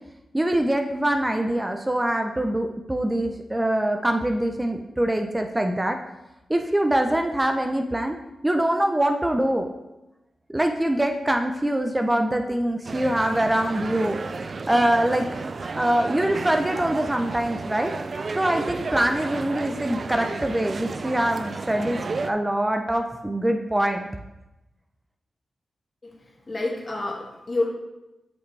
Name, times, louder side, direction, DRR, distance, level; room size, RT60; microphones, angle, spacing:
voice 1, 0.3-6.0 6.5-8.2 8.4-9.7 10.5-14.2 14.7-15.2 15.7-17.9 18.3-24.1, right 1 dB, 15° right, 4 dB, 0.7 m, -24 dB
sound 1, 12.8-22.3, right 4 dB, 55° right, 0.4 m, -33 dB
voice 2, 26.5-27.7, left 2 dB, 45° left, -2 dB, 2.3 m, -28 dB
8.5 x 5.7 x 3.4 m, 0.97 s
cardioid pair, 45°, 0 cm